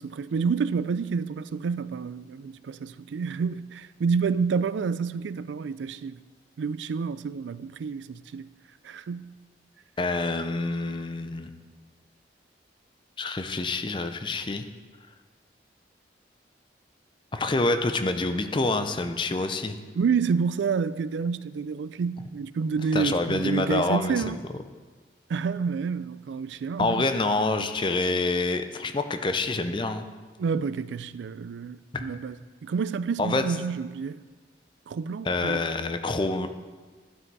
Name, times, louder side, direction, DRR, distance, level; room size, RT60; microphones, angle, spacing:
voice 1, 0.0-6.2 6.6-8.5 8.8-9.3 19.9-24.4 25.3-27.0 30.4-32.4 32.6-34.2 34.9-35.6, right 5 dB, 85° right, 0.3 m, -29 dB
voice 2, 10.0-11.5 13.2-14.7 17.3-19.8 22.9-24.4 26.8-30.1 31.9-32.1 33.2-33.4 35.3-36.5, left 2 dB, 25° left, 0.5 m, -27 dB
12.0 x 6.0 x 4.7 m
head